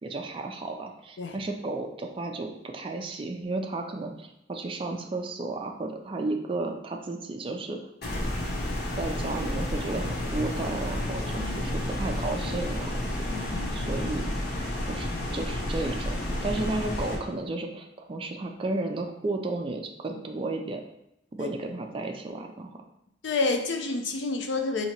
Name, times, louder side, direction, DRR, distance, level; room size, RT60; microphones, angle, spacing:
voice 1, 0.0-7.8 9.0-13.1 13.7-14.3 14.9-20.8 21.3-22.8, right 2 dB, 30° right, 3 dB, 0.4 m, -33 dB
sound 1, 8.0-17.2, left 1 dB, 60° left, 0.8 m, -31 dB
voice 2, 11.3-11.8 13.3-14.3 21.4-21.5 23.2-24.9, left 3 dB, 80° left, 4 dB, 0.5 m, -30 dB
2.9 x 2.8 x 4.3 m, 0.84 s
head